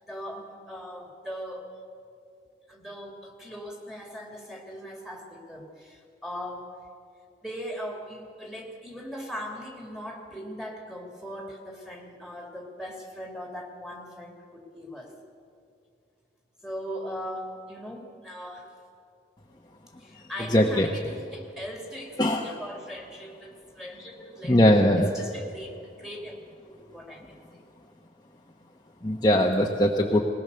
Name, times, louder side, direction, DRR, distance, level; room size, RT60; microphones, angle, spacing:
voice 1, 0.1-1.7 2.7-6.7 7.4-15.2 16.6-18.7 20.0-24.6 25.0-26.4 26.7-27.6, equal, 5° right, 0 dB, 2.6 m, -39 dB
voice 2, 20.5-20.9 22.2-22.5 24.5-25.1 29.0-30.2, left 1 dB, 20° left, 0 dB, 1.0 m, -20 dB
21.0 x 19.0 x 6.9 m, 2.3 s
head